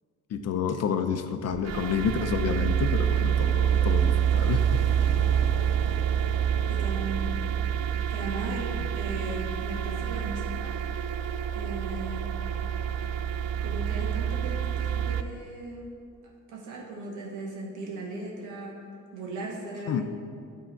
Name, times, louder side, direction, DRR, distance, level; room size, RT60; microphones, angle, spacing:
voice 1, 0.3-4.7 8.8-8.9 19.9-20.0, left 7 dB, 55° left, 8 dB, 0.6 m, -29 dB
sound 1, 1.5-15.2, right 9 dB, 60° right, 0.5 m, -27 dB
voice 2, 6.7-7.3 8.1-10.8 11.5-12.3 13.6-15.8 16.5-18.7 19.1-20.0, right 2 dB, 80° right, -1 dB, 1.5 m, -37 dB
10.0 x 3.7 x 4.4 m, 2.3 s
cardioid pair, 90°, 30 cm